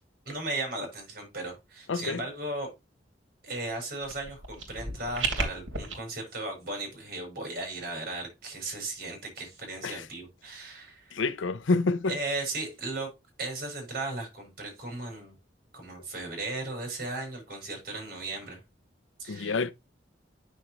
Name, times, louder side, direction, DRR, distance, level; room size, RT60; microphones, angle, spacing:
voice 1, 0.2-2.7 3.4-11.2 12.1-13.1 13.4-15.3 15.7-18.6 19.2-19.6, right 2 dB, 50° right, 5.4 m, -36 dB
voice 2, 1.9-2.2 9.8-10.0 11.1-12.2 19.3-19.7, left 3 dB, 90° left, 0.6 m, -28 dB
sound 1, 4.0-5.9, right 3 dB, 85° right, 2.7 m, -33 dB
9.2 x 6.4 x 3.0 m
head